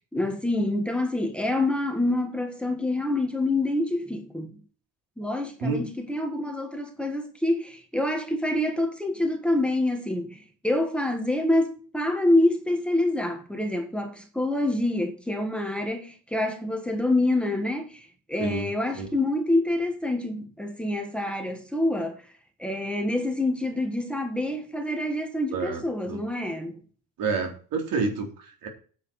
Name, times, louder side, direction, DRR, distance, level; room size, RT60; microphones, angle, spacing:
voice 1, 0.1-4.6 5.2-22.2 22.6-26.8, left 1 dB, 5° left, 1.5 m, -26 dB
voice 2, 25.5-25.8 26.1-26.2 27.2-28.7, right 4 dB, 70° right, 4.1 m, -29 dB
9.6 x 7.5 x 6.4 m
cardioid pair, 170°, 36 cm